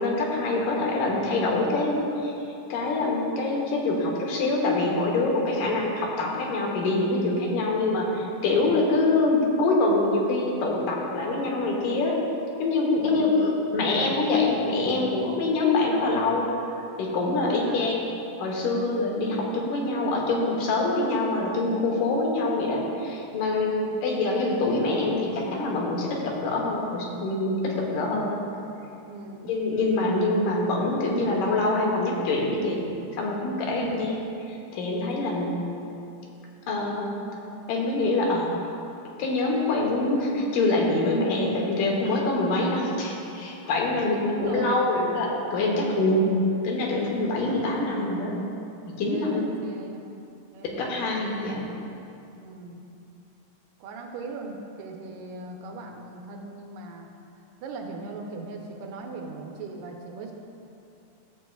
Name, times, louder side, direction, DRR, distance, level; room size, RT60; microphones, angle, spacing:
voice 1, 0.0-2.3 2.7-12.2 12.6-16.5 17.0-18.0 18.4-28.4 29.4-32.9 33.1-34.1 34.5-35.6 36.7-37.2 37.7-38.5 39.2-46.4 46.6-48.4 48.8-49.4 50.7-51.7, left 2 dB, 80° left, -2 dB, 2.7 m, -25 dB
voice 2, 7.4-7.8 13.0-13.4 17.3-17.8 23.6-24.0 29.1-29.5 33.7-34.1 44.1-44.9 49.0-50.1 50.5-50.9 52.4-52.8 53.8-57.1 57.6-60.3, right 3 dB, 80° right, 1 dB, 2.4 m, -38 dB
12.5 x 7.6 x 2.3 m, 2.7 s
omnidirectional pair, 3.8 m